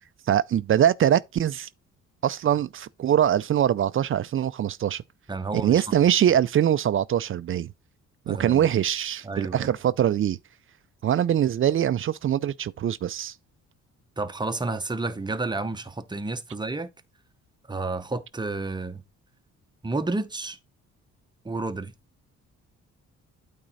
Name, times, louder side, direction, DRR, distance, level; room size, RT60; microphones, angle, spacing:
voice 1, 0.3-1.7 2.2-5.0 5.5-7.7 8.3-10.4 11.0-13.3, right 10 dB, 45° right, 0.4 m, -23 dB
voice 2, 5.3-5.9 8.3-8.6 9.2-9.7 14.2-16.9 17.7-19.0 19.8-20.6 21.4-21.9, right 3 dB, 15° right, 0.8 m, -30 dB
8.8 x 3.7 x 4.1 m
cardioid pair, 90°, 30 cm